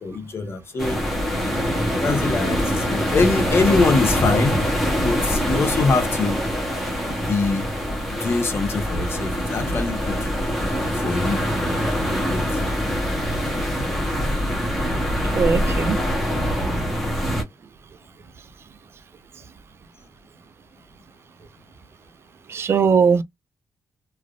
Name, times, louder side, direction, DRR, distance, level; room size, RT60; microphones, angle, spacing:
voice 1, 0.0-1.1 2.0-4.6 5.0-6.4 7.2-7.7 8.1-10.3 10.9-11.4 12.1-12.6 13.8-14.0 16.6-16.9, left 3 dB, 35° left, 0.8 m, -24 dB
sound 1, 0.8-17.4, equal, ahead, 0.9 m, -24 dB
voice 2, 15.3-16.0 22.5-23.2, right 6 dB, 40° right, 0.4 m, -19 dB
3.2 x 2.5 x 2.4 m
wide cardioid pair, 175°, 7 cm